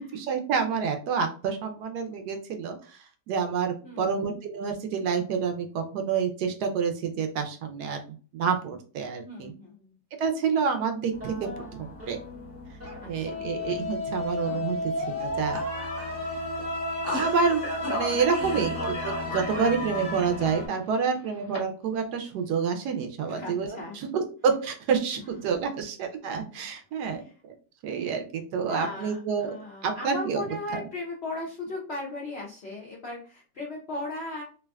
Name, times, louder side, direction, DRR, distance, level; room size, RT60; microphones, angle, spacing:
voice 1, 0.0-3.0 3.3-8.0 8.3-9.5 10.2-12.2 13.1-15.6 16.6-16.7 17.1-27.5 27.8-29.5 29.8-30.4 30.7-30.8, right 6 dB, 75° right, 5 dB, 1.1 m, -28 dB
voice 2, 3.8-4.3 9.2-10.0 13.0-13.5 18.5-18.7 23.2-24.0 25.2-25.3 26.9-27.3 28.7-34.4, left 2 dB, 65° left, -4 dB, 0.6 m, -37 dB
sound 1, 11.1-20.7, left 1 dB, 25° right, 0.3 m, -33 dB
Speech, 17.0-21.6, left 2 dB, 45° left, 0.9 m, -38 dB
3.3 x 2.4 x 2.2 m, 0.38 s
omnidirectional pair, 1.9 m